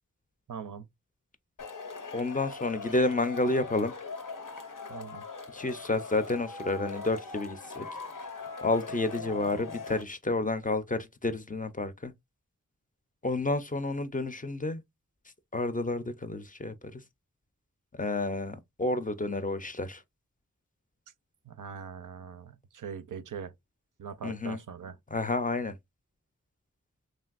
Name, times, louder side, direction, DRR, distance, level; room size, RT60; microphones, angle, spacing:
voice 1, 0.5-0.9 4.9-5.2 21.4-23.5 24.0-25.0, right 6 dB, 80° right, 0.5 m, -41 dB
Male speech man speaking / Shout / Clapping, 1.6-10.0, left 4 dB, 85° left, 0.6 m, -41 dB
voice 2, 2.1-3.9 5.5-7.8 8.6-12.1 13.2-14.8 15.5-17.0 17.9-20.0 24.2-24.6 25.1-25.7, left 2 dB, 25° left, 0.4 m, -30 dB
3.2 x 2.6 x 2.3 m
wide cardioid pair, 55°, 31 cm